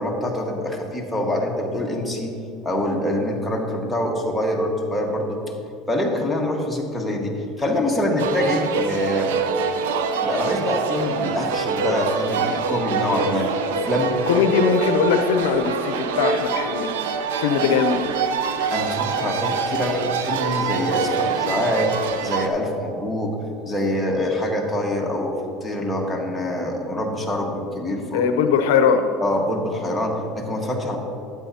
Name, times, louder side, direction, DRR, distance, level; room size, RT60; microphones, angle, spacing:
voice 1, 0.0-2.3 2.6-5.4 5.9-9.4 10.2-14.7 18.7-21.9 22.2-23.4 23.6-28.3 29.2-31.0, left 1 dB, 5° left, -2 dB, 1.5 m, -25 dB
sound 1, 8.2-22.5, right 5 dB, 90° right, 0.6 m, -25 dB
voice 2, 14.3-16.9 17.4-18.0 28.1-29.0, left 6 dB, 85° left, 7 dB, 0.6 m, -20 dB
12.5 x 8.7 x 2.8 m, 2.6 s
supercardioid pair, 105°, 0 cm